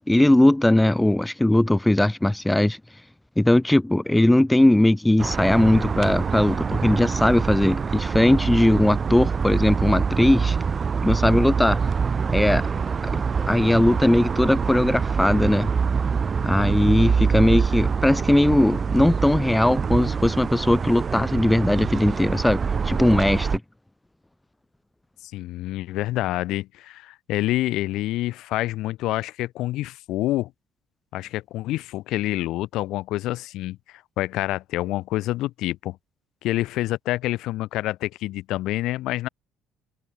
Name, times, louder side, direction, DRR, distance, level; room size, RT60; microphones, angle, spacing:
voice 1, 0.1-2.8 3.4-10.6 11.0-11.8 12.3-12.7 13.5-15.7 16.4-22.6 22.8-23.6, left 1 dB, 5° left, 0.9 m, -19 dB
sound 1, 5.2-23.6, right 6 dB, 30° right, 5.1 m, -25 dB
voice 2, 25.2-30.5 31.1-36.0 36.4-39.3, left 16 dB, 75° left, 5.7 m, -27 dB
cardioid pair, 120°, 0 cm